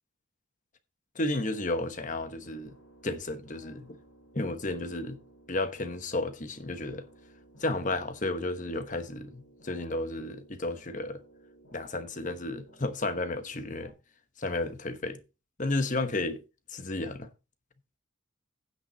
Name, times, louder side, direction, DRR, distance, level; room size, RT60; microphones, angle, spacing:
voice 1, 1.1-2.7 3.0-4.0 4.3-5.2 5.5-7.0 7.6-11.2 11.7-13.9 14.4-15.2 15.6-16.4 16.7-17.3, left 2 dB, 35° left, 1.1 m, -32 dB
sound 1, 1.3-13.9, right 1 dB, 80° left, 6.0 m, -57 dB
9.5 x 8.6 x 4.0 m
head